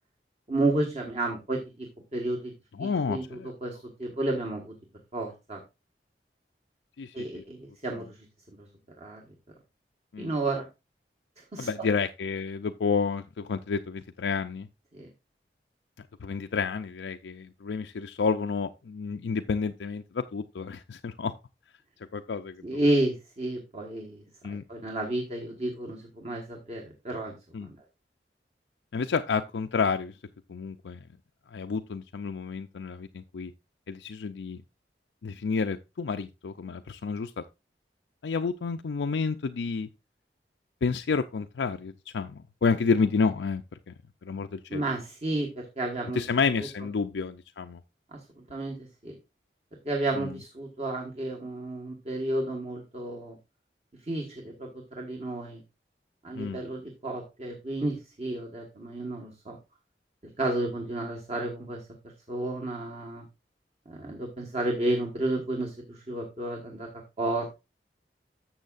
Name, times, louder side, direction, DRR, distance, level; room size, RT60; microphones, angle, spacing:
voice 1, 0.5-2.5 2.8-4.7 5.1-5.6 7.1-8.2 8.6-8.7 9.0-9.2 10.2-10.7 11.4-11.9 14.9-15.1 22.6-27.7 44.7-46.2 48.1-48.8 49.0-49.2 49.8-53.4 54.0-55.6 56.2-59.6 60.4-61.8 62.3-63.2 63.9-66.9 67.2-67.5, right 2 dB, 35° right, 1.5 m, -32 dB
voice 2, 2.8-3.5 7.0-7.4 10.1-10.3 11.6-14.7 16.2-21.3 22.1-22.5 24.4-24.6 27.5-27.7 28.9-30.1 30.5-31.0 31.5-33.5 33.9-34.6 35.2-37.3 38.2-39.9 40.8-43.6 43.9-44.0 44.2-44.8 46.2-47.8 50.2-50.3 56.4-56.6, left 5 dB, 90° left, 0.5 m, -30 dB
12.0 x 7.2 x 2.5 m
head